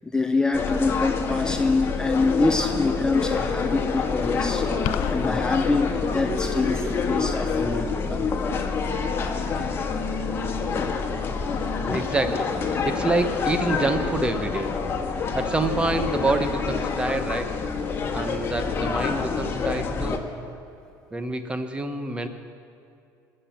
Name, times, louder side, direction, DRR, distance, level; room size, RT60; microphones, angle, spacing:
voice 1, 0.0-8.3 11.8-12.0, left 3 dB, 10° left, 6 dB, 0.6 m, -25 dB
sound 1, 0.5-20.2, left 5 dB, 35° left, 1.5 m, -27 dB
sound 2, 4.8-5.3, left 14 dB, 85° left, 0.4 m, -29 dB
voice 2, 11.9-14.7 15.3-17.6 18.1-20.3 21.1-22.3, right 2 dB, 15° right, 9 dB, 1.1 m, -27 dB
21.0 x 7.7 x 7.2 m, 2.6 s
cardioid pair, 115°, 7 cm